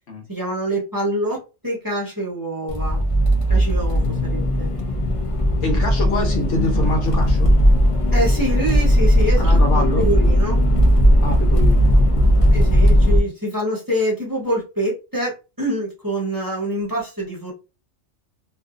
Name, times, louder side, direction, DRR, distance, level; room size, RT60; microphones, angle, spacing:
voice 1, 0.3-3.0 3.5-4.7 8.1-10.6 12.5-17.5, right 1 dB, 20° right, -4 dB, 0.9 m, -25 dB
Accelerating revving vroom, 2.7-13.2, equal, 50° left, 0.4 m, -17 dB
voice 2, 5.6-7.5 9.4-10.1 11.2-12.1, left 1 dB, 80° left, 2 dB, 1.2 m, -25 dB
2.6 x 2.4 x 2.4 m, 0.30 s
omnidirectional pair, 1.2 m